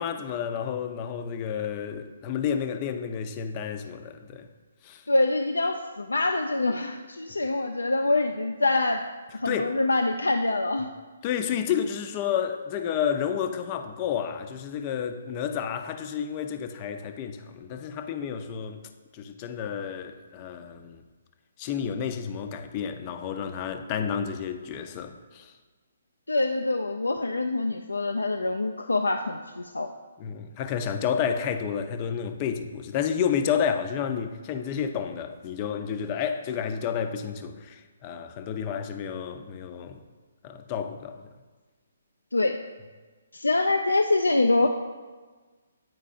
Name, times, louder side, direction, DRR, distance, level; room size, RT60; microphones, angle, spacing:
voice 1, 0.0-4.5 4.8-5.0 9.4-9.7 11.2-18.8 19.1-21.0 21.6-25.5 30.2-40.0 40.4-41.2, left 8 dB, 30° left, 0.5 m, -30 dB
voice 2, 5.1-9.1 9.3-10.9 26.3-29.9 42.3-42.6 43.3-44.7, left 2 dB, 85° left, 0.3 m, -25 dB
9.0 x 4.6 x 2.5 m
figure-of-eight pair, 140°, 0 cm